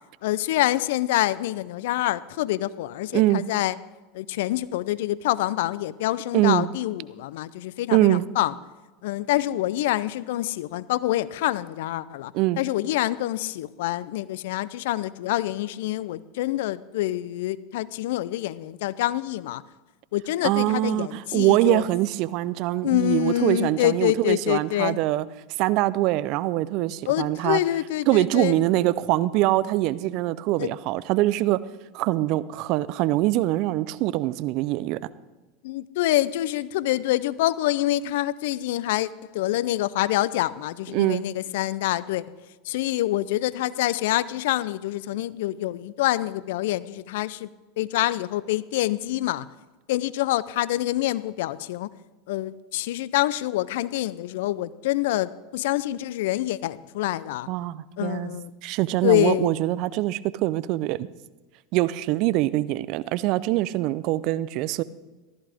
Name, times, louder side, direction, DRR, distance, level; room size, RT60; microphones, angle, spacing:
voice 1, 0.2-3.8 4.1-8.5 9.0-19.6 20.1-21.9 22.8-25.0 27.1-28.7 30.6-30.7 35.6-42.2 42.6-47.5 47.8-49.5 49.9-51.9 52.3-57.5 58.0-58.5 59.0-59.5, left 15 dB, 70° left, 19 dB, 0.5 m, -26 dB
voice 2, 3.1-3.4 6.3-6.7 7.9-8.2 12.3-12.6 20.4-25.3 25.6-27.6 28.1-31.6 31.9-35.0 40.9-41.2 57.5-58.3 58.6-61.1 61.7-64.8, right 16 dB, 55° right, 18 dB, 0.5 m, -23 dB
15.0 x 13.5 x 3.5 m, 1.2 s
hypercardioid pair, 95°, 0 cm